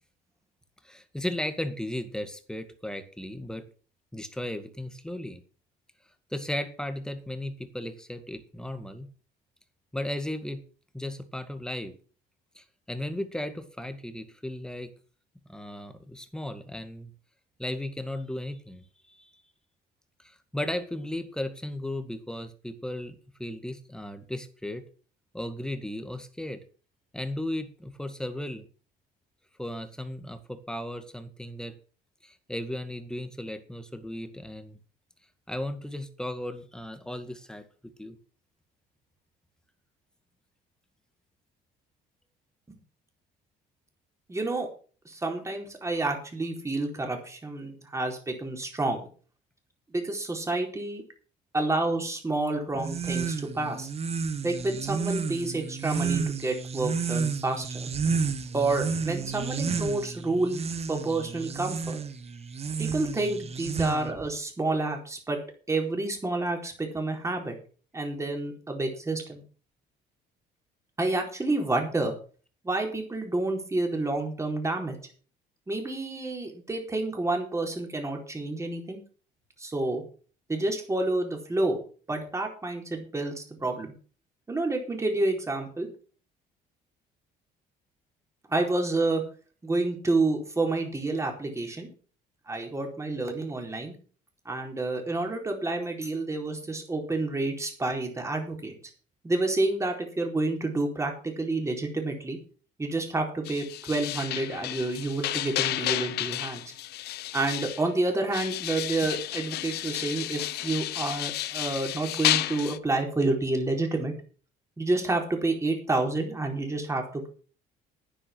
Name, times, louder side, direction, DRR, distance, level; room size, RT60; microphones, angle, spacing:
voice 1, 0.8-3.7 4.1-5.4 6.3-9.1 9.9-10.6 10.9-11.9 12.6-14.9 15.5-17.1 17.6-19.2 20.2-24.8 25.3-26.6 27.1-28.7 29.6-31.7 32.2-34.8 35.5-38.2, left 1 dB, 5° left, 9 dB, 1.9 m, -35 dB
voice 2, 44.3-44.7 45.0-49.1 49.9-51.0 51.5-53.9 54.4-57.9 58.5-62.0 62.8-65.4 65.7-67.5 67.9-69.4 71.0-72.1 72.6-75.0 75.7-79.0 79.6-80.0 80.5-81.8 82.1-83.9 84.5-85.9 88.5-89.2 89.6-91.9 92.5-93.9 94.4-98.7 99.2-102.4 102.8-106.6 107.3-114.1 114.8-117.3, right 2 dB, 15° right, 2 dB, 4.4 m, -29 dB
sound 1, 52.7-64.3, right 5 dB, 40° right, 1.5 m, -31 dB
sound 2, 103.5-107.9 108.3-112.8, left 14 dB, 75° left, 0.9 m, -32 dB
10.0 x 10.0 x 6.4 m, 0.39 s
cardioid pair, 110°, 17 cm